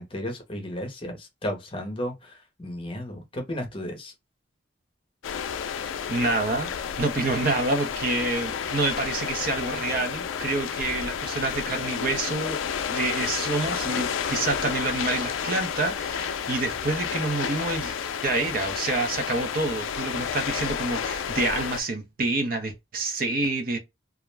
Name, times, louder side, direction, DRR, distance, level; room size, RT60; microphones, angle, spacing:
voice 1, 0.0-2.3 2.6-4.1, equal, 25° left, 0.6 m, -33 dB
sound 1, 5.2-21.8, left 7 dB, 80° left, 0.3 m, -31 dB
voice 2, 6.1-6.7 7.0-12.6 12.9-17.9 18.2-23.8, right 2 dB, 45° right, 0.5 m, -27 dB
2.4 x 2.1 x 3.1 m
head